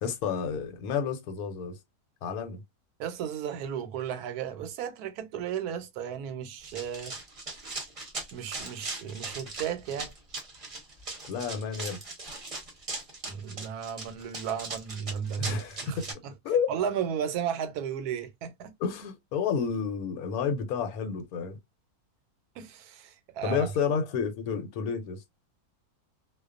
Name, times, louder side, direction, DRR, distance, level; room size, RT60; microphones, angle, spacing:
voice 1, 0.0-1.8 2.2-2.6 11.3-12.0 15.4-16.1 16.4-16.7 18.8-21.6 23.4-25.2, left 6 dB, 80° left, 1.1 m, -30 dB
voice 2, 3.0-7.1 8.3-10.1 13.3-16.3 16.7-18.7 22.5-23.7, right 8 dB, 85° right, 1.1 m, -34 dB
Run, 6.6-16.1, right 3 dB, 30° right, 0.7 m, -39 dB
2.4 x 2.2 x 2.4 m
omnidirectional pair, 1.6 m